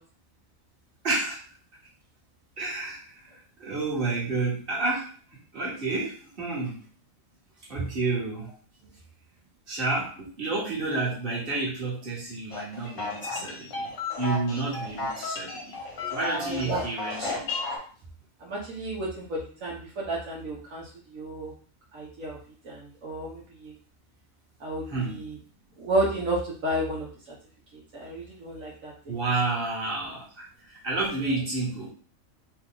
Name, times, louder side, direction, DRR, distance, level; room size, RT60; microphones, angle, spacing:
voice 1, 1.0-1.4 2.6-3.1 3.6-5.1 5.5-6.8 7.7-8.5 9.7-13.9 14.2-15.8 16.1-17.5 24.9-25.2 29.1-30.4 30.8-31.9, right 3 dB, 40° right, -5 dB, 1.7 m, -30 dB
sound 1, 12.5-17.8, left 3 dB, 90° left, 1.6 m, -33 dB
voice 2, 16.4-16.8 18.4-21.5 21.9-22.4 22.6-23.7 24.6-25.4 25.8-27.3 27.7-29.2, right 1 dB, 75° right, -5 dB, 1.3 m, -32 dB
4.2 x 2.4 x 3.7 m, 0.43 s
omnidirectional pair, 1.4 m